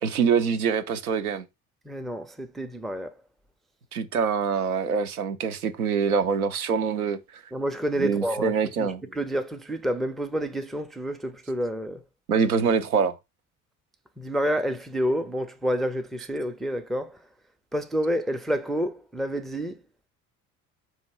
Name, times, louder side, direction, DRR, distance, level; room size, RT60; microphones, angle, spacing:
voice 1, 0.0-1.5 3.9-7.4 8.0-9.0 12.3-13.1, right 6 dB, 90° right, 0.5 m, -25 dB
voice 2, 1.9-3.1 7.5-8.5 8.8-12.0 14.2-17.2 17.7-19.8, equal, ahead, 0.3 m, -29 dB
3.8 x 2.7 x 4.5 m
figure-of-eight pair, 50°, 43 cm